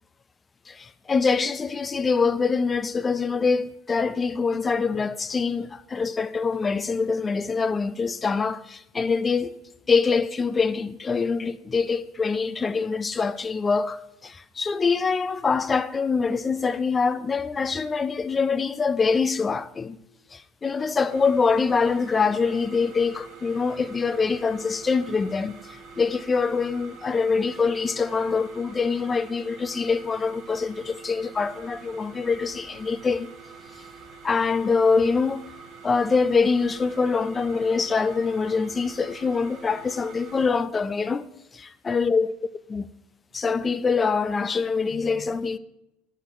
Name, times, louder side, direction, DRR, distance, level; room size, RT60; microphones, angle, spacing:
voice 1, 0.7-9.6 9.9-20.0 20.3-33.3 34.2-35.4 35.8-41.3 41.5-42.3 42.7-42.9 43.3-45.6, left 5 dB, 25° left, 0.4 m, -24 dB
sound 1, 21.1-40.5, right 5 dB, 50° right, 1.0 m, -46 dB
11.5 x 6.4 x 2.5 m
hypercardioid pair, 85°, 0 cm